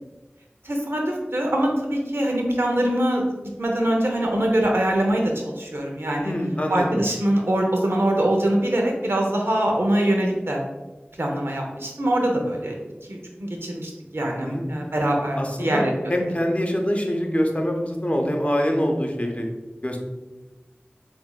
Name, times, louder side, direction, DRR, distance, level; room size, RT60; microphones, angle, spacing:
voice 1, 0.6-3.2 3.6-6.3 6.7-10.6 11.2-12.7 13.1-15.9, right 1 dB, 75° right, 0 dB, 0.7 m, -23 dB
voice 2, 6.2-7.1 14.4-14.7 15.4-19.5 19.8-20.0, equal, 35° left, 2 dB, 0.7 m, -24 dB
6.0 x 2.7 x 2.3 m, 1.1 s
wide cardioid pair, 45°, 4 cm